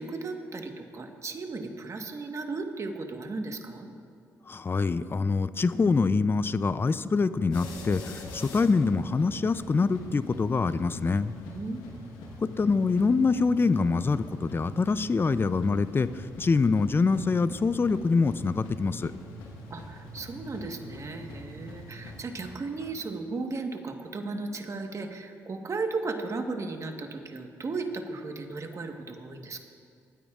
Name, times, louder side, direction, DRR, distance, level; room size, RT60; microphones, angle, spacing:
voice 1, 0.0-3.9 11.5-11.8 12.2-12.3 19.7-29.6, right 3 dB, 45° right, 5 dB, 1.3 m, -35 dB
voice 2, 4.5-11.4 12.4-19.1, left 4 dB, 30° left, 15 dB, 0.4 m, -25 dB
sound 1, 7.5-22.9, left 1 dB, 85° left, 1.2 m, -44 dB
24.0 x 9.2 x 2.4 m, 2.2 s
supercardioid pair, 55°, 7 cm